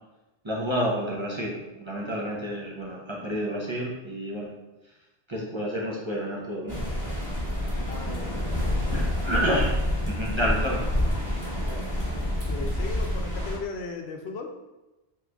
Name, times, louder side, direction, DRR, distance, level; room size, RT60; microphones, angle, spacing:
voice 1, 0.4-4.5 5.3-6.8 8.9-9.7 10.0-10.8, equal, 30° right, -3 dB, 0.6 m, -29 dB
sound 1, 6.7-13.6, left 1 dB, 20° left, 1.1 m, -28 dB
voice 2, 7.9-9.0 11.6-11.8 12.4-14.5, left 4 dB, 90° left, 4 dB, 0.9 m, -37 dB
3.7 x 3.0 x 3.5 m, 1.0 s
omnidirectional pair, 1.1 m